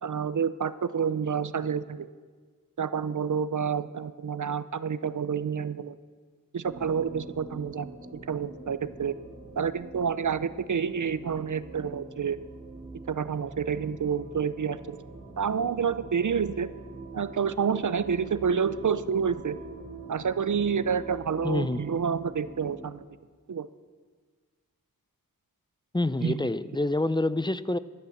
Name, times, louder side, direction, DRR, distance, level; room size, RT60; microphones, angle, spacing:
voice 1, 0.0-2.1 2.8-6.0 6.5-9.1 9.6-12.4 13.1-15.0 15.4-16.7 17.1-19.6 20.1-23.0 23.5-23.7 26.2-26.3, right 6 dB, 60° right, 15 dB, 0.6 m, -29 dB
sound 1, 6.6-22.8, right 3 dB, 15° right, 3.5 m, -45 dB
voice 2, 21.4-21.8 25.9-27.8, left 2 dB, 15° left, 15 dB, 0.5 m, -27 dB
13.5 x 11.0 x 7.1 m, 1.5 s
wide cardioid pair, 50°, 35 cm